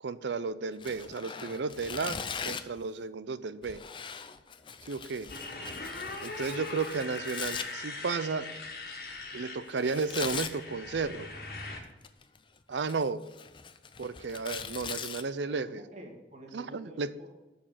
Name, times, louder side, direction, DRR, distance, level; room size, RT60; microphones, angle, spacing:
voice 1, 0.0-2.2 2.4-3.8 4.8-5.3 6.2-8.6 9.3-11.3 12.7-13.2 14.0-15.8 16.5-17.1, right 4 dB, 75° right, 15 dB, 0.5 m, -33 dB
Tearing, 0.8-2.8 3.6-7.7 9.8-10.6 11.8-12.4 12.8-15.2, left 6 dB, 25° left, 0.5 m, -40 dB
Motorcycle, 5.3-11.8, left 3 dB, 55° left, 1.7 m, -41 dB
voice 2, 15.4-17.3, right 1 dB, 40° right, 1 dB, 1.9 m, -49 dB
7.3 x 6.6 x 7.4 m, 1.1 s
head